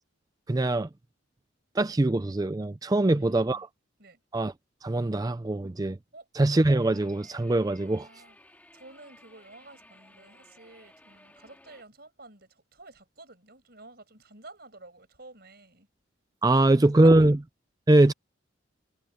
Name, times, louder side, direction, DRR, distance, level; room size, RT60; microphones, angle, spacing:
voice 1, 0.5-0.9 1.8-3.7 4.3-4.5 4.8-6.0 6.4-8.1 16.4-17.4 17.9-18.1, right 2 dB, 20° right, 0.4 m, -22 dB
voice 2, 3.0-3.7 4.0-4.2 6.1-6.3 7.8-8.4 8.7-15.9 16.5-17.3, right 2 dB, 55° right, 5.9 m, -51 dB
sound 1, 6.6-11.8, left 1 dB, 10° left, 3.4 m, -56 dB
head